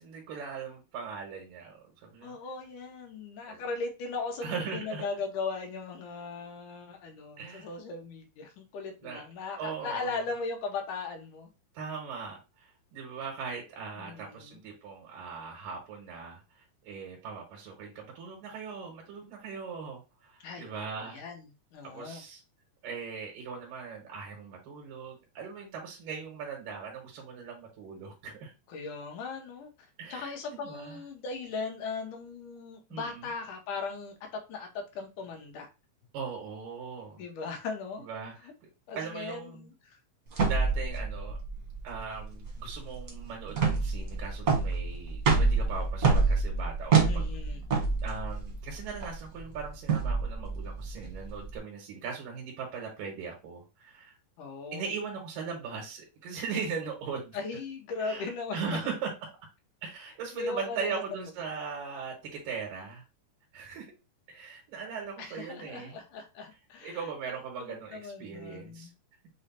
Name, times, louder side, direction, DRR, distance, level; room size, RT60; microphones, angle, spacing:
voice 1, 0.0-2.4 3.5-3.6 4.4-5.1 7.4-7.7 9.0-9.2 9.6-10.2 11.7-21.2 21.8-22.4 22.8-28.5 30.0-31.0 32.9-33.3 36.1-37.2 38.0-38.5 39.0-39.7 40.4-41.4 41.8-47.3 47.7-54.2 54.7-57.4 58.0-59.1 59.8-63.0 63.5-63.9 64.3-66.0 66.8-68.9, right 5 dB, 90° right, 2.6 m, -39 dB
voice 2, 2.2-11.5 14.0-14.6 20.4-21.5 21.7-22.2 28.7-29.7 30.1-35.7 37.2-38.1 38.9-40.0 47.0-47.6 54.4-54.8 57.3-58.6 60.3-61.0 65.2-67.1 67.6-68.9, left 4 dB, 75° left, 2.4 m, -38 dB
sound 1, 40.3-51.5, right 4 dB, 55° right, 0.9 m, -28 dB
6.2 x 2.1 x 4.1 m
omnidirectional pair, 3.7 m